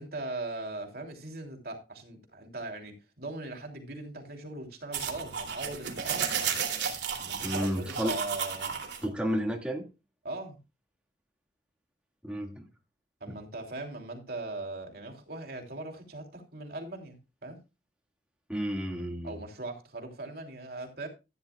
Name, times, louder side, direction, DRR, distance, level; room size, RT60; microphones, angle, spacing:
voice 1, 0.0-6.3 7.2-8.8 10.2-10.6 13.2-17.6 19.2-21.1, right 2 dB, 60° right, 3.1 m, -40 dB
sound 1, 4.9-9.1, right 7 dB, 80° right, 2.7 m, -33 dB
voice 2, 7.4-8.1 9.0-9.9 12.2-12.6 18.5-19.4, equal, 5° right, 1.9 m, -31 dB
15.0 x 10.5 x 2.3 m
head